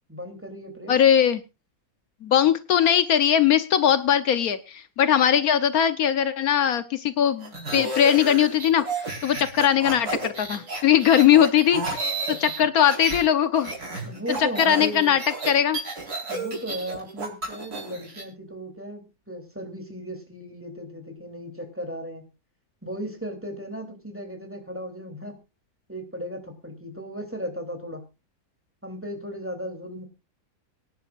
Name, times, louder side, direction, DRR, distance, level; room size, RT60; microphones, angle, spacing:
voice 1, 0.1-0.9 14.0-15.2 16.3-22.2 22.8-25.4 25.9-28.0 28.8-30.0, equal, 10° right, 4 dB, 3.0 m, -36 dB
voice 2, 0.9-1.4 2.2-12.0 12.3-13.7 14.4-15.2 15.5-15.8, left 9 dB, 75° left, 12 dB, 1.3 m, -20 dB
sound 1, 7.4-13.2 13.5-18.2, right 3 dB, 85° right, 5.0 m, -32 dB
24.0 x 10.5 x 2.4 m, 0.28 s
omnidirectional pair, 1.6 m